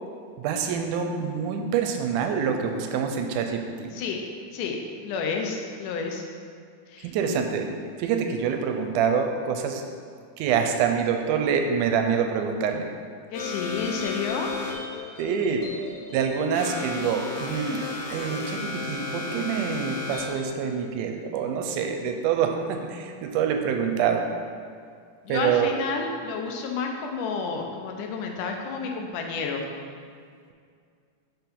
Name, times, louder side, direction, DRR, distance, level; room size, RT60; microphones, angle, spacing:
voice 1, 0.4-3.9 7.0-7.7 8.0-9.8 10.4-12.9 15.2-15.6 16.1-24.3 25.3-25.9, right 7 dB, 85° right, 5 dB, 2.1 m, -26 dB
voice 2, 4.5-6.2 6.9-7.1 13.3-14.5 25.3-29.6, left 5 dB, 90° left, 2 dB, 2.3 m, -30 dB
sound 1, 13.3-20.5, left 4 dB, 75° left, 2.4 m, -34 dB
5.4 x 4.6 x 5.1 m, 2.2 s
omnidirectional pair, 3.6 m